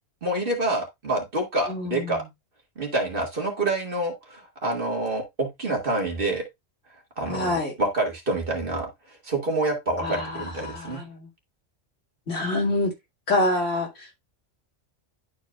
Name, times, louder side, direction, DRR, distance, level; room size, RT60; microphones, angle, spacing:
voice 1, 0.2-2.2 2.8-6.4 7.2-8.9 9.2-11.0, right 2 dB, 45° right, 2.2 m, -27 dB
voice 2, 1.7-2.3 7.3-7.7 10.0-11.3 12.3-12.9 13.3-14.2, left 2 dB, 70° left, 2.6 m, -27 dB
11.5 x 4.4 x 2.4 m
omnidirectional pair, 1.3 m